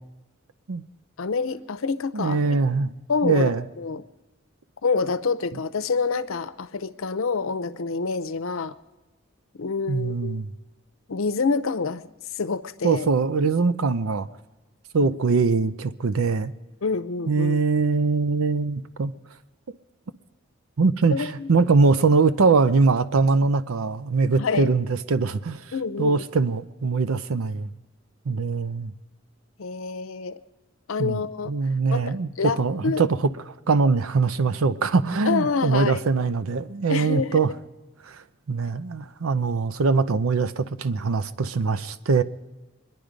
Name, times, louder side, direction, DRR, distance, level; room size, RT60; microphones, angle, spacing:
voice 1, 1.2-2.6 3.1-3.5 3.8-4.1 4.8-8.8 9.6-10.4 11.1-12.0 12.3-13.1 15.0-15.2 16.8-17.6 21.1-21.5 24.4-24.7 25.7-26.2 29.6-30.4 30.9-31.5 31.9-33.0 35.2-36.0 36.9-37.6, left 4 dB, 75° left, 12 dB, 0.7 m, -27 dB
voice 2, 2.1-2.9 3.2-3.6 9.9-10.5 12.8-14.3 14.9-16.5 17.3-19.1 20.8-25.7 26.0-27.7 28.3-28.9 31.0-31.2 31.5-37.5 38.0-42.2, right 4 dB, 85° right, 13 dB, 0.6 m, -22 dB
25.0 x 11.0 x 5.1 m, 1.1 s
head